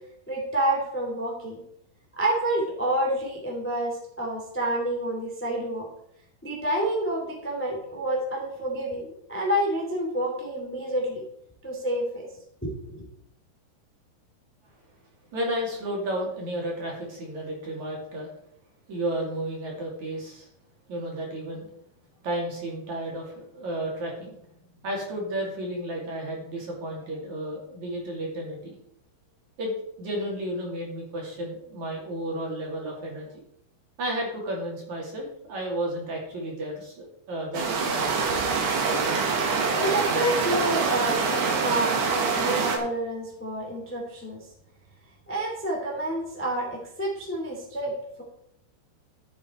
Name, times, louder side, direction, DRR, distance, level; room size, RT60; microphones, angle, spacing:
voice 1, 0.3-1.6 2.1-5.9 6.4-11.2 11.6-12.3 12.6-13.1 39.2-39.3 39.8-44.4 45.3-48.2, right 1 dB, 5° left, -1 dB, 1.6 m, -29 dB
voice 2, 15.3-18.3 18.9-20.5 20.9-21.7 22.2-24.4 24.8-28.7 29.6-33.3 34.0-38.0, right 1 dB, 45° right, -2 dB, 3.4 m, -32 dB
sound 1, 37.5-42.8, right 4 dB, 65° right, 3.6 m, -25 dB
13.5 x 8.1 x 4.4 m, 0.74 s
omnidirectional pair, 5.3 m